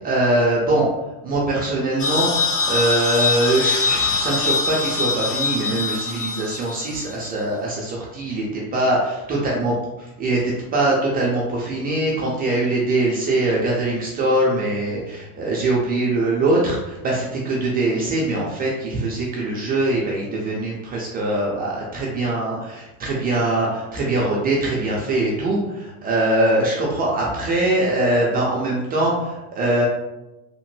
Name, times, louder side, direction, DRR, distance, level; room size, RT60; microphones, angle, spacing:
voice 1, 0.0-0.9 1.2-9.7 10.2-29.9, right 2 dB, 25° right, -4 dB, 0.3 m, -22 dB
sound 1, 2.0-7.3, left 4 dB, 30° left, 0.6 m, -23 dB
2.8 x 2.1 x 3.0 m, 1.0 s
hypercardioid pair, 110°, 45 cm